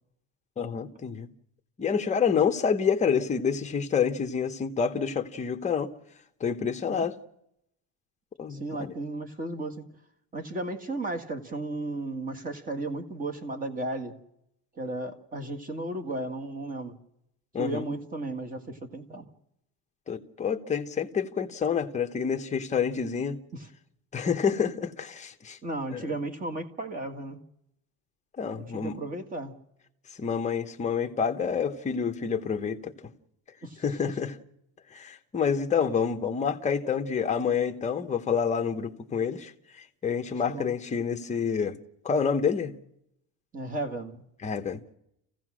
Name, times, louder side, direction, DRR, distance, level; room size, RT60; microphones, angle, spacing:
voice 1, 0.6-1.3 1.8-5.9 6.4-7.1 8.4-8.9 17.5-17.9 20.1-23.4 24.1-25.6 25.9-26.1 28.4-29.0 30.2-33.1 33.8-34.3 34.9-39.5 39.8-41.8 42.0-42.8 44.4-44.8, left 6 dB, 20° left, 1.0 m, -28 dB
voice 2, 8.5-9.8 10.3-14.1 14.8-17.0 17.6-19.3 23.5-23.7 25.6-27.4 28.5-29.6 33.6-34.1 40.5-40.7 43.5-44.2, right 2 dB, 20° right, 1.8 m, -34 dB
28.0 x 16.0 x 6.2 m
cardioid pair, 170°, 39 cm